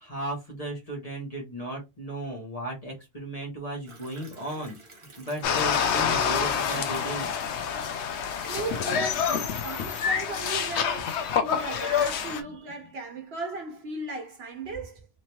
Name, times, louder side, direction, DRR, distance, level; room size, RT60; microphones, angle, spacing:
voice 1, 0.0-4.8 5.2-7.7 11.6-11.7 12.2-12.3, right 1 dB, 35° left, 1.3 m, -36 dB
sound 1, 3.9-7.6 8.1-9.8, right 2 dB, 30° right, 0.9 m, -51 dB
sound 2, 5.4-12.4, left 7 dB, 85° left, 0.9 m, -27 dB
voice 2, 8.4-15.1, right 2 dB, 70° right, 1.2 m, -37 dB
3.2 x 3.0 x 2.8 m
omnidirectional pair, 1.1 m